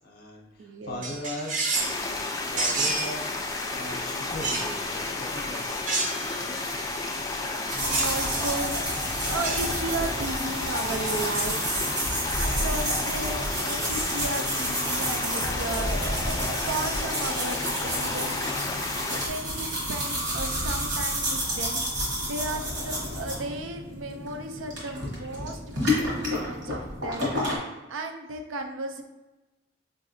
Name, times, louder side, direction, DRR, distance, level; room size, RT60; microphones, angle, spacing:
voice 1, 0.0-1.6 2.5-3.3 3.7-5.9 20.9-21.0, left 1 dB, 55° left, -2 dB, 0.6 m, -38 dB
voice 2, 0.6-1.0 7.5-8.7 9.2-11.8 12.4-16.0 16.5-18.5 19.1-21.8 22.2-27.3 27.9-29.0, right 2 dB, 85° right, 5 dB, 0.5 m, -35 dB
Drawing sword, 1.0-2.0 2.6-3.1 4.4-4.7 5.8-6.4 7.9-8.2 9.2-9.7 11.0-11.5, right 3 dB, 40° right, 0.5 m, -29 dB
sound 1, 1.7-19.3, left 2 dB, 20° left, 0.3 m, -32 dB
sound 2, 7.7-27.6, equal, 60° right, 1.3 m, -30 dB
4.8 x 2.6 x 2.6 m, 1.1 s
head